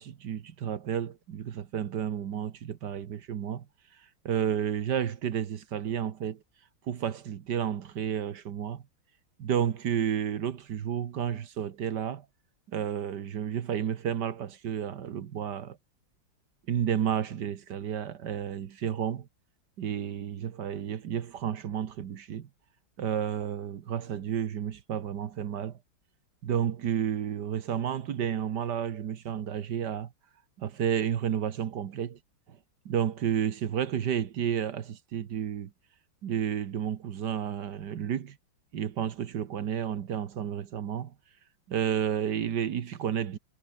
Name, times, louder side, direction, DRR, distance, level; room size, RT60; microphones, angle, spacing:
voice 1, 0.0-3.7 4.3-6.4 6.9-8.8 9.4-12.3 12.7-15.8 16.7-19.3 19.8-22.5 23.0-25.8 26.4-30.1 30.6-32.2 32.9-35.7 36.2-38.4 38.7-41.1 41.7-43.4, right 9 dB, 65° right, 1.7 m, -31 dB
omnidirectional pair, 2.1 m